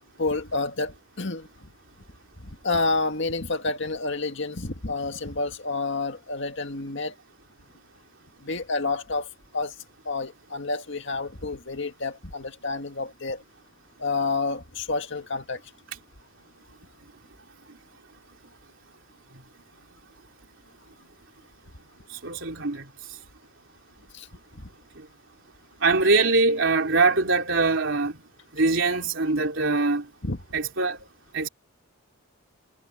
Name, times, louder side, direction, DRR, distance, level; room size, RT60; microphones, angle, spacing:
voice 1, 0.2-1.7 2.4-7.2 8.4-9.3 9.5-9.7 10.1-13.4 14.0-15.6 24.1-24.3 24.5-24.7 30.2-30.4, left 3 dB, 55° left, 2.1 m, -29 dB
voice 2, 22.2-22.8 25.8-28.2 28.5-30.1 30.5-31.0 31.3-31.5, right 3 dB, 60° right, 3.6 m, -22 dB
head